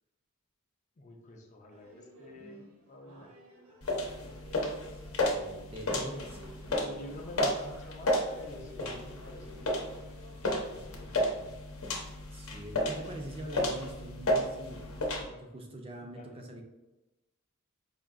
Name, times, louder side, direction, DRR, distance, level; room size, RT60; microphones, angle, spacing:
voice 1, 1.0-3.3 4.1-4.4 5.9-6.3 6.8-11.6 16.0-16.3, left 1 dB, 35° left, 3 dB, 0.5 m, -49 dB
sound 1, 1.7-11.6, equal, 75° right, 1.0 m, -55 dB
sound 2, 3.8-15.2, left 1 dB, 75° left, 0.8 m, -33 dB
voice 2, 4.9-6.6 12.3-16.6, right 1 dB, 25° right, 2 dB, 0.4 m, -45 dB
5.0 x 2.6 x 2.4 m, 1.0 s
head